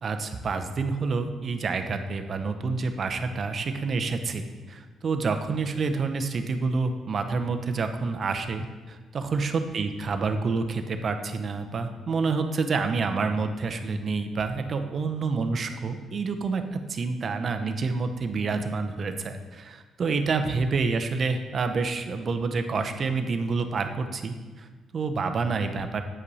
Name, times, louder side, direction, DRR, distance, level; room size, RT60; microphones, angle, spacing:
voice 1, 0.0-16.6 16.9-26.0, right 4 dB, 50° right, 7 dB, 0.7 m, -28 dB
8.5 x 5.4 x 4.1 m, 1.3 s
cardioid pair, 90°, 0 cm